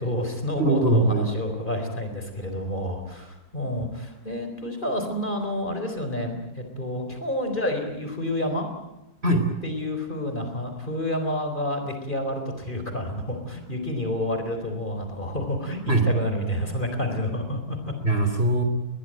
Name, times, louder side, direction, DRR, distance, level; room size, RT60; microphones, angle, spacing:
voice 1, 0.0-8.6 9.6-15.8 16.0-17.9, left 1 dB, 30° left, 5 dB, 4.1 m, -29 dB
voice 2, 0.6-1.3 9.2-9.5 15.9-16.1 18.0-18.6, right 2 dB, 40° right, 6 dB, 3.4 m, -21 dB
21.5 x 21.0 x 8.9 m, 0.93 s
omnidirectional pair, 1.7 m